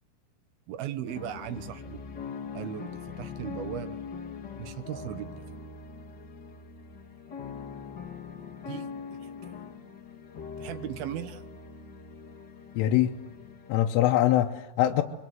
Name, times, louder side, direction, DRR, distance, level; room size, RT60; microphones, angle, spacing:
voice 1, 0.7-2.0 2.5-4.0 4.6-5.3 8.7-8.9 9.1-9.5 10.6-11.4, right 11 dB, 75° right, 11 dB, 2.3 m, -37 dB
sound 1, 1.1-13.7, left 5 dB, 55° left, 1.1 m, -42 dB
voice 2, 12.8-13.1 13.7-15.0, left 13 dB, 80° left, 3 dB, 3.4 m, -23 dB
25.5 x 23.5 x 7.9 m, 1.1 s
omnidirectional pair, 5.7 m